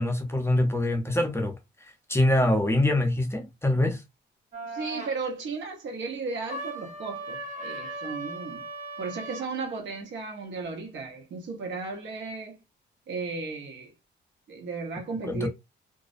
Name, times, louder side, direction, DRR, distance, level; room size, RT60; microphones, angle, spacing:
voice 1, 0.0-1.6 2.1-4.0 15.3-15.5, left 1 dB, 15° left, 0.6 m, -24 dB
sound 1, 4.5-5.2 6.5-9.5, right 2 dB, 35° right, 0.8 m, -37 dB
voice 2, 4.6-8.6 9.0-12.6 13.1-13.9 14.5-15.5, right 4 dB, 70° right, 1.0 m, -35 dB
2.4 x 2.0 x 2.5 m
cardioid pair, 90°, 20 cm